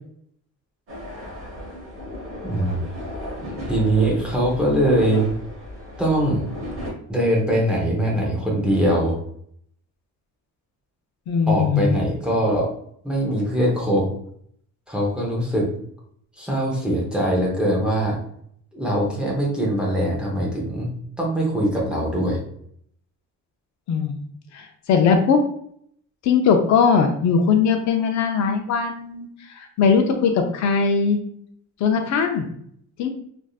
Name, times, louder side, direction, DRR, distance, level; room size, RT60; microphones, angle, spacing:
sound 1, 0.9-6.9, left 1 dB, 45° right, 1.1 m, -35 dB
voice 1, 2.4-2.8 3.7-5.3 6.0-6.5 7.1-9.2 11.5-12.7 13.0-14.1 14.9-15.7 16.4-18.2 18.7-20.9 21.2-22.4, right 1 dB, 5° right, -4 dB, 0.6 m, -22 dB
voice 2, 11.3-12.0 23.9-24.2 24.5-25.4 26.2-31.2 31.8-32.5 33.0-33.1, left 5 dB, 60° left, 5 dB, 0.4 m, -20 dB
3.3 x 2.5 x 2.3 m, 0.66 s
cardioid pair, 175°, 31 cm